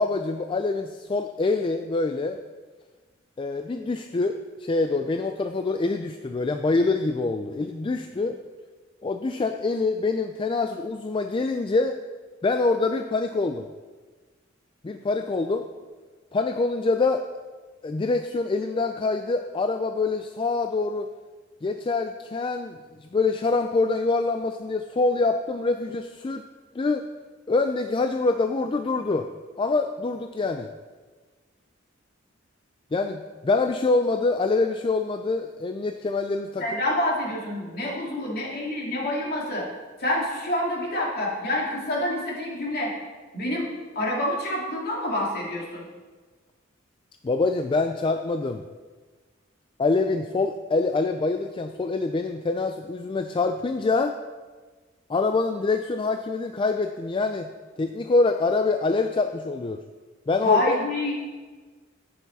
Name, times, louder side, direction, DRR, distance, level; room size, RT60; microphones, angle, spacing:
voice 1, 0.0-2.4 3.4-8.4 9.0-12.0 12.4-13.7 14.8-15.7 16.3-17.2 17.8-21.1 21.6-26.4 26.7-27.0 27.5-29.3 29.6-30.7 32.9-36.7 47.2-48.7 49.8-54.1 55.1-57.5 57.8-59.8 60.3-60.8, left 3 dB, 25° left, 7 dB, 0.3 m, -25 dB
voice 2, 36.6-39.7 40.0-42.9 43.3-43.7 43.9-45.9 60.4-61.1, left 1 dB, 50° left, -3 dB, 2.7 m, -27 dB
11.0 x 8.4 x 4.1 m, 1.4 s
head